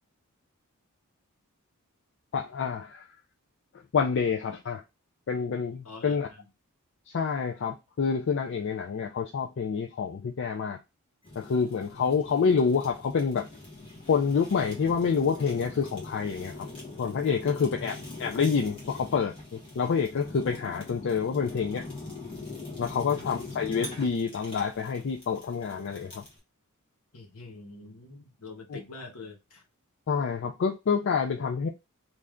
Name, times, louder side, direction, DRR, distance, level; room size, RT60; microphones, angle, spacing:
voice 1, 2.3-3.1 3.9-4.8 5.3-6.3 7.1-10.8 11.4-13.5 14.1-16.7 17.0-21.8 22.8-26.2 28.7-28.8 30.1-31.7, left 6 dB, 55° left, 0.4 m, -27 dB
voice 2, 5.8-6.4 11.9-12.3 17.4-18.1 23.0-23.5 27.1-29.6, left 3 dB, 75° left, 1.1 m, -45 dB
Fire, 11.2-26.4, left 2 dB, 25° left, 1.5 m, -43 dB
3.2 x 2.6 x 3.5 m
head